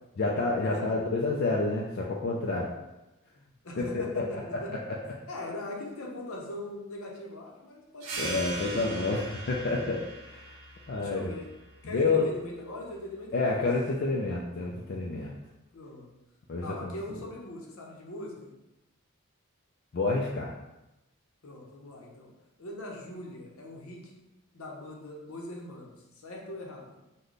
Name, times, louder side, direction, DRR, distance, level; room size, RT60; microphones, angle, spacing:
voice 1, 0.2-2.7 3.8-4.4 4.9-5.0 8.2-10.5 10.9-11.3 11.8-12.2 13.3-15.3 16.5-16.9 19.9-20.5, left 3 dB, 45° left, -3 dB, 0.4 m, -29 dB
voice 2, 3.3-4.7 5.3-8.3 11.0-11.5 11.8-13.6 15.7-16.1 16.6-18.5 21.4-22.3 22.6-24.2 24.5-27.0, left 1 dB, 70° left, -1 dB, 0.7 m, -41 dB
sound 1, 8.0-13.2, right 2 dB, 65° right, 0.6 m, -41 dB
3.2 x 2.2 x 3.9 m, 0.97 s
head